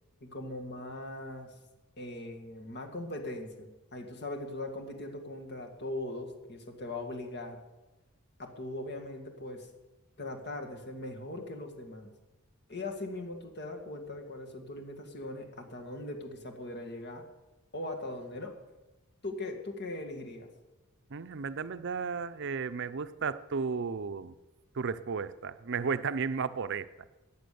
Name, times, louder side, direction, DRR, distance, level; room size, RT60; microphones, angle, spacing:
voice 1, 0.2-1.5 2.0-7.6 8.4-9.7 10.2-12.1 12.7-17.2 17.7-18.6 19.2-20.5, left 2 dB, 50° left, 3 dB, 2.1 m, -40 dB
voice 2, 21.1-24.3 24.7-26.9, right 5 dB, 55° right, 13 dB, 0.6 m, -34 dB
14.0 x 9.5 x 6.9 m, 1.1 s
head